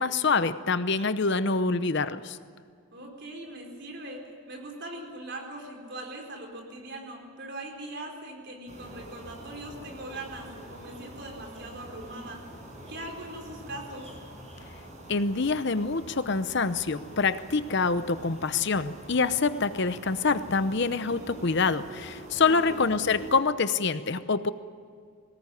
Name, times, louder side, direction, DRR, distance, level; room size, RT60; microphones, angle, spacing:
voice 1, 0.0-2.4 15.1-24.5, left 4 dB, 55° left, 12 dB, 0.8 m, -26 dB
voice 2, 2.9-12.4 12.9-14.1 22.4-22.8, right 1 dB, 50° right, 2 dB, 4.5 m, -41 dB
sound 1, 8.7-23.4, right 1 dB, 35° right, 6.2 m, -45 dB
21.5 x 18.5 x 9.8 m, 2.2 s
head